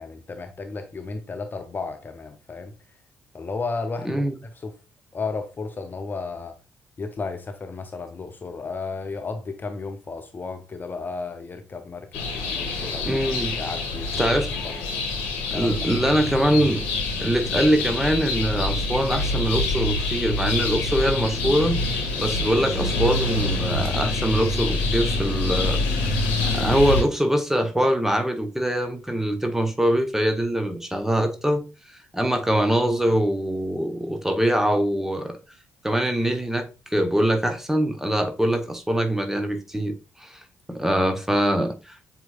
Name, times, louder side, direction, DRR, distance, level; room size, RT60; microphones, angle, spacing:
voice 1, 0.0-2.7 3.3-4.2 4.6-4.7 5.1-6.6 7.0-13.2 13.6-14.2 14.5-14.7 15.5-16.1, left 4 dB, 30° left, 0.6 m, -33 dB
voice 2, 4.0-4.4 13.1-13.6 14.2-14.5 15.5-16.8 17.2-21.8 22.2-31.7 32.1-35.4 35.8-40.4 40.7-42.0, right 1 dB, 5° right, 0.8 m, -23 dB
sound 1, 12.1-27.0, left 2 dB, 70° left, 1.0 m, -26 dB
7.3 x 2.8 x 2.4 m
figure-of-eight pair, 40°, 6 cm